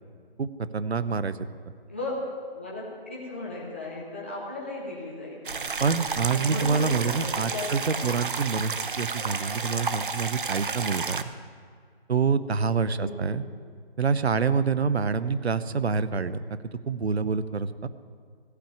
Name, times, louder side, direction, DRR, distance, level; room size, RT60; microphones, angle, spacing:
voice 1, 0.4-1.4 5.8-11.2 12.1-13.4 14.0-16.4 16.9-17.9, right 5 dB, 85° right, 14 dB, 0.8 m, -26 dB
voice 2, 2.5-5.6 6.3-8.1 13.0-13.4, left 2 dB, 10° left, -5 dB, 0.8 m, -36 dB
sound 1, 5.5-11.2, right 4 dB, 55° right, 0.7 m, -31 dB
15.0 x 6.0 x 8.5 m, 2.1 s
hypercardioid pair, 175°, 31 cm